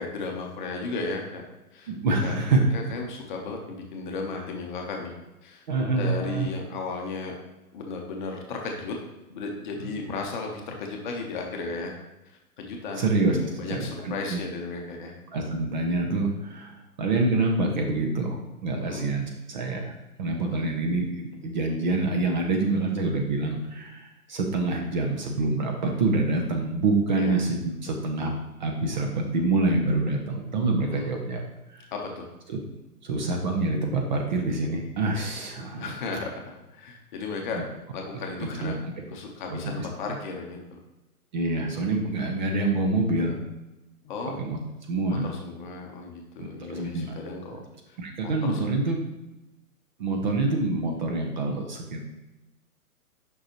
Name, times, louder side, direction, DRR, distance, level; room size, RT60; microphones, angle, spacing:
voice 1, 0.0-1.9 2.2-2.4 2.7-5.1 5.4-5.6 5.9-7.3 7.7-9.0 9.3-11.9 12.2-13.0 13.3-15.1 18.8-19.0 20.5-20.7 27.2-27.4 30.9-31.1 31.9-32.2 35.8-37.6 37.9-38.8 39.1-40.8 42.2-42.3 44.0-44.4 45.1-47.6 47.9-48.0 48.2-48.7, left 4 dB, 30° left, 1 dB, 0.9 m, -35 dB
voice 2, 1.9-2.6 5.7-6.5 13.0-13.4 13.6-14.4 15.3-19.9 20.2-28.3 28.6-31.4 31.7-31.9 32.5-32.6 33.0-35.9 37.5-37.6 38.6-38.7 39.5-39.9 41.3-43.4 44.4-44.6 44.9-45.3 46.4-47.1 48.0-49.0 50.0-52.0, right 2 dB, 30° right, 2 dB, 0.7 m, -26 dB
6.4 x 5.5 x 3.0 m, 1.0 s
figure-of-eight pair, 130°, 45 cm